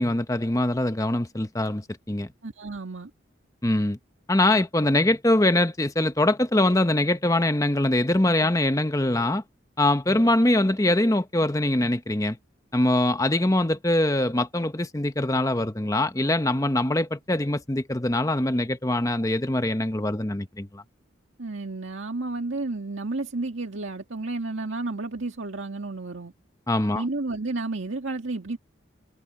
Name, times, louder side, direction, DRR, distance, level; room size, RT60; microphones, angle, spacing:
voice 1, 0.0-2.3 3.6-4.0 4.3-9.4 9.8-12.4 12.7-20.8 26.7-27.0, left 1 dB, 15° left, 0.9 m, -23 dB
voice 2, 2.4-3.1 21.4-26.3 26.9-28.6, right 2 dB, 80° right, 1.9 m, -31 dB
head